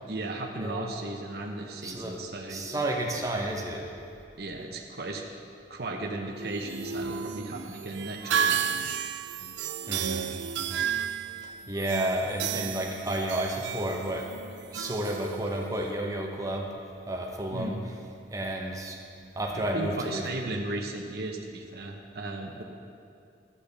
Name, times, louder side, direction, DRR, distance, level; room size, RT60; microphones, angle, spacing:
voice 1, 0.1-2.7 4.4-5.3 5.7-8.7 17.5-17.9 19.5-22.6, right 2 dB, 60° right, 1 dB, 0.8 m, -35 dB
voice 2, 1.8-2.2 2.5-3.9 9.9-10.3 10.6-10.9 11.7-14.3 14.7-16.7 17.1-17.8 18.3-19.0 19.4-20.2, right 1 dB, 20° right, 0 dB, 0.9 m, -31 dB
sound 1, 6.4-15.9, right 8 dB, 80° right, 0.3 m, -33 dB
12.0 x 8.5 x 3.4 m, 2.5 s
head